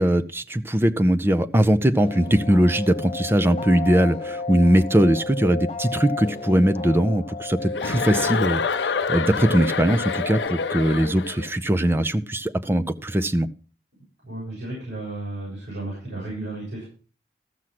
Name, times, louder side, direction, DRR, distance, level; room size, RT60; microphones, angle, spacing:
voice 1, 0.0-13.5, right 1 dB, 15° right, 9 dB, 0.5 m, -21 dB
sound 1, 2.0-10.5, left 3 dB, 35° left, 1.3 m, -33 dB
Chuckle chortle, 7.7-11.5, left 5 dB, 80° left, 0.6 m, -27 dB
voice 2, 14.2-16.9, right 2 dB, 90° right, -7 dB, 7.6 m, -33 dB
14.0 x 6.3 x 5.9 m, 0.39 s
head